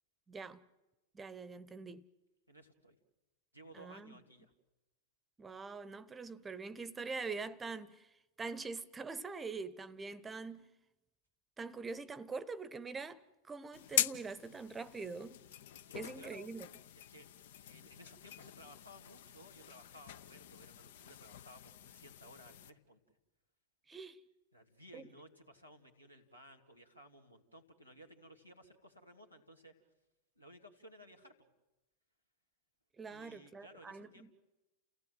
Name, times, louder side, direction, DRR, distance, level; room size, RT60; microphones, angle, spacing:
voice 1, 0.3-0.6 1.1-2.1 3.7-4.2 5.4-8.1 8.4-10.7 11.6-15.4 15.9-16.7 23.9-24.2 24.9-25.0 33.0-34.3, right 4 dB, 15° right, 0.8 m, -44 dB
voice 2, 2.5-3.0 3.5-4.5 15.9-16.5 17.0-17.3 17.6-23.0 24.5-29.7 30.4-31.3 33.1-34.3, equal, 90° left, 2.3 m, -58 dB
Fluorescent Lights, 13.7-22.7, left 11 dB, 55° left, 0.7 m, -42 dB
30.0 x 16.5 x 7.6 m
figure-of-eight pair, 90°, 0 cm